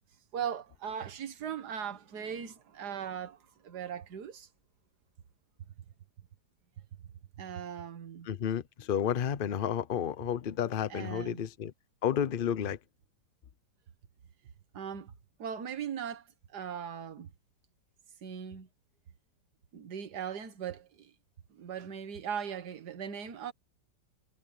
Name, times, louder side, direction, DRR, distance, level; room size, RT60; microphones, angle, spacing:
voice 1, 0.3-3.4 3.6-4.5 7.4-8.3 10.9-11.4 14.7-15.1 15.4-16.2 16.5-17.3 18.2-18.7 19.7-21.1 21.5-23.5, right 8 dB, 65° right, 1.9 m, -39 dB
voice 2, 8.3-11.7 12.0-12.8, left 9 dB, 45° left, 0.7 m, -31 dB
omnidirectional pair, 1.9 m